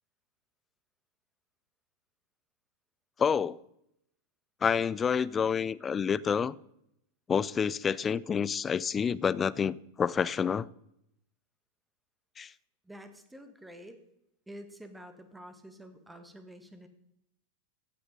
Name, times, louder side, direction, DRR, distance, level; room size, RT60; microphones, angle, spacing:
voice 1, 3.2-3.6 4.6-6.6 7.3-10.7 12.4-12.5, left 7 dB, 20° left, 0.3 m, -28 dB
voice 2, 12.8-14.0 14.5-16.9, equal, 5° right, 1.3 m, -48 dB
15.0 x 6.0 x 5.1 m
figure-of-eight pair, 90°, 0 cm